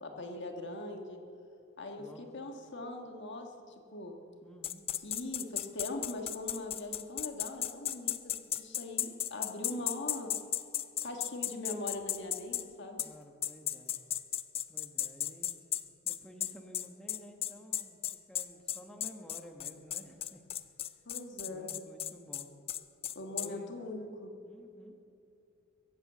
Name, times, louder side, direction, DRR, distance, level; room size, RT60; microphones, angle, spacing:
voice 1, 0.0-1.2 1.8-4.1 5.0-10.4 11.0-13.0 21.0-21.7 23.1-24.3, left 2 dB, 60° left, 3 dB, 1.6 m, -41 dB
voice 2, 4.4-4.8 13.0-13.9 14.7-15.6 16.0-20.7 21.4-22.5 23.3-23.7 24.4-24.9, equal, 5° left, 2 dB, 1.2 m, -53 dB
sound 1, 4.6-12.6 13.0-13.1 13.4-23.5, left 11 dB, 30° left, 0.4 m, -35 dB
22.0 x 8.0 x 7.7 m, 2.7 s
head